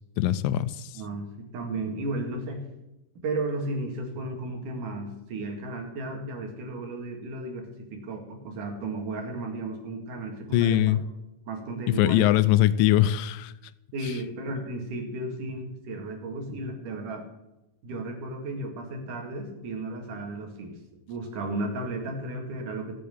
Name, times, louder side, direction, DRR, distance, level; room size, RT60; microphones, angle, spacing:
voice 1, 0.2-0.9 10.5-11.0 11.9-13.5, left 13 dB, 85° left, 2.3 m, -21 dB
voice 2, 1.0-2.7 3.2-11.0 11.5-12.4 13.9-17.3 17.8-20.8 21.1-23.0, right 2 dB, 70° right, 3.6 m, -34 dB
14.5 x 7.5 x 7.2 m
omnidirectional pair, 3.8 m